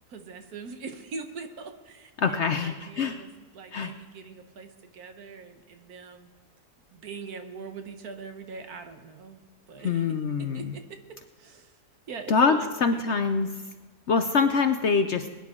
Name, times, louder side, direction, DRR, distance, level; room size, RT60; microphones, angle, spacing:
voice 1, 0.1-6.3 6.9-10.1 10.4-10.8 11.4-11.8 12.1-12.7 13.0-13.4, right 5 dB, 70° right, 6 dB, 1.6 m, -42 dB
voice 2, 2.2-3.2 3.7-3.9 9.8-10.7 12.3-13.6 14.1-15.3, left 5 dB, 60° left, 7 dB, 0.8 m, -24 dB
21.5 x 10.5 x 3.7 m, 1.3 s
omnidirectional pair, 1.7 m